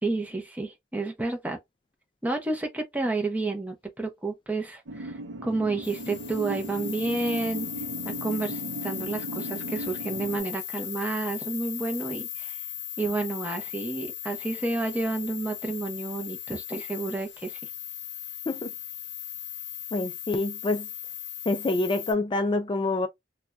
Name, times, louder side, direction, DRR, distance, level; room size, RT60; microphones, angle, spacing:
voice 1, 0.0-1.6 2.2-7.7 8.0-12.6 13.0-17.6, right 3 dB, 10° right, 0.7 m, -30 dB
sound 1, 4.9-10.4, right 2 dB, 70° right, 0.5 m, -37 dB
sound 2, 5.8-22.1, left 11 dB, 65° left, 0.7 m, -38 dB
voice 2, 19.9-20.9 21.5-23.1, left 2 dB, 25° left, 0.3 m, -26 dB
2.6 x 2.2 x 3.2 m
head